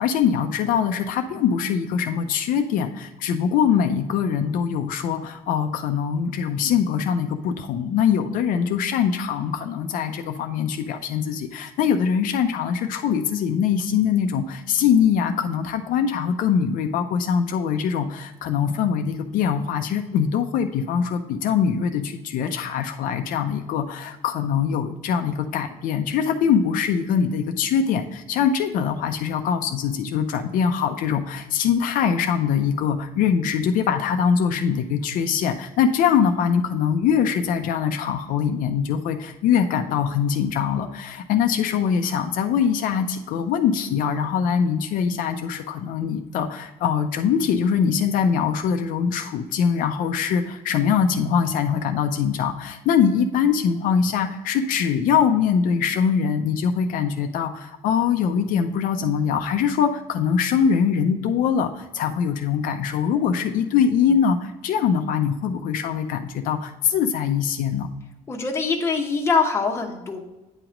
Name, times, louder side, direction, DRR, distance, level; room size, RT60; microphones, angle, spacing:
voice 1, 0.0-67.9, left 7 dB, 70° left, 5 dB, 0.5 m, -23 dB
voice 2, 68.3-70.2, left 4 dB, 20° left, 1 dB, 1.0 m, -23 dB
8.9 x 3.0 x 5.0 m, 1.0 s
cardioid pair, 140°, 15 cm